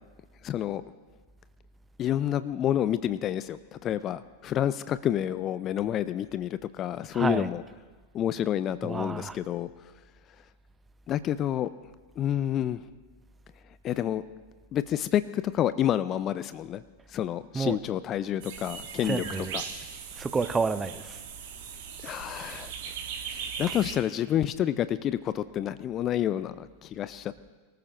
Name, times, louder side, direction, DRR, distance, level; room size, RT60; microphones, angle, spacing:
voice 1, 0.4-0.8 2.0-7.6 8.1-9.7 11.1-11.7 12.2-12.8 13.8-14.2 14.7-16.8 17.1-19.2 19.5-19.6 22.0-22.9 23.6-27.5, left 11 dB, 30° left, 15 dB, 0.4 m, -29 dB
voice 2, 7.1-7.5 8.8-9.4 17.5-17.8 19.0-19.6 20.2-21.2 23.7-23.8, right 4 dB, 15° right, 13 dB, 0.6 m, -30 dB
sound 1, 18.4-24.0, right 7 dB, 50° right, 1.8 m, -39 dB
23.5 x 14.0 x 3.0 m, 1.3 s
figure-of-eight pair, 90°, 0 cm